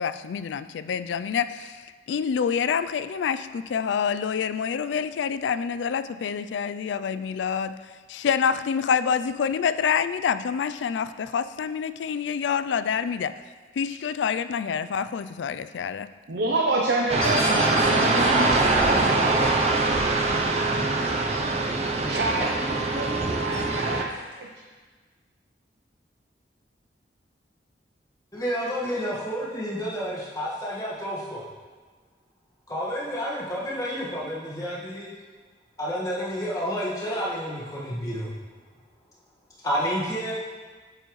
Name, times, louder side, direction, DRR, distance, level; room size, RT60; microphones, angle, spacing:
voice 1, 0.0-13.4 13.7-16.1, left 7 dB, 90° left, 13 dB, 0.3 m, -27 dB
voice 2, 16.3-18.6 22.0-24.1 24.4-24.5, right 2 dB, 75° right, -1 dB, 0.7 m, -28 dB
sound 1, 17.1-24.0, right 2 dB, 35° right, 0.5 m, -23 dB
sound 2, 17.2-22.4 22.8-22.9 23.5-23.6, equal, 50° left, 2.5 m, -35 dB
voice 3, 28.3-31.5 32.7-35.1 35.8-38.3 39.6-40.3, equal, 20° left, -6 dB, 1.6 m, -30 dB
8.9 x 6.9 x 3.1 m, 1.4 s
head